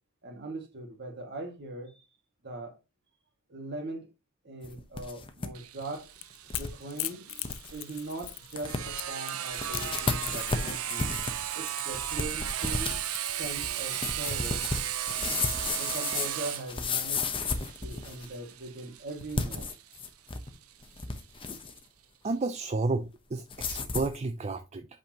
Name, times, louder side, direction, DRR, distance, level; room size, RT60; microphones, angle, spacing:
voice 1, 0.2-2.1 2.4-2.8 3.5-4.1 4.4-6.1 6.5-7.4 7.7-11.2 11.6-13.0 13.4-14.6 15.8-17.3 17.8-19.7, right 2 dB, 50° right, 2.1 m, -40 dB
sound 1, 4.6-5.5 5.8-5.9 6.5-6.7 7.1-7.2 7.4-7.7 8.2-8.3 8.6-9.1 9.5-18.3 19.2-20.5 20.8-21.8 23.5-24.2, left 4 dB, 25° left, 0.9 m, -34 dB
Sawing, 5.6-21.0, right 11 dB, 85° right, 0.7 m, -36 dB
Crackle / Crack, 5.8-14.0, left 17 dB, 65° left, 0.5 m, -41 dB
voice 2, 22.2-24.9, right 3 dB, 30° right, 0.4 m, -31 dB
8.3 x 5.3 x 2.9 m
head